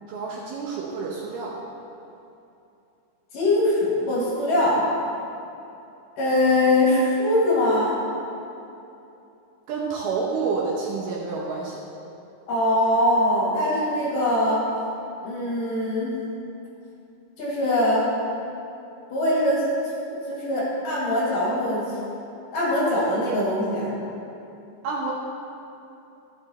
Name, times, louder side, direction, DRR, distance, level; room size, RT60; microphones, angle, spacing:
voice 1, 0.1-1.5 9.7-11.8 24.8-25.1, right 4 dB, 75° right, -3 dB, 2.5 m, -28 dB
voice 2, 3.3-4.8 6.2-7.9 12.5-14.6 15.2-16.1 17.4-18.1 19.1-19.6 20.3-21.9 22.5-23.9, left 1 dB, 55° left, -6 dB, 3.1 m, -22 dB
13.0 x 7.7 x 4.3 m, 2.8 s
omnidirectional pair, 5.2 m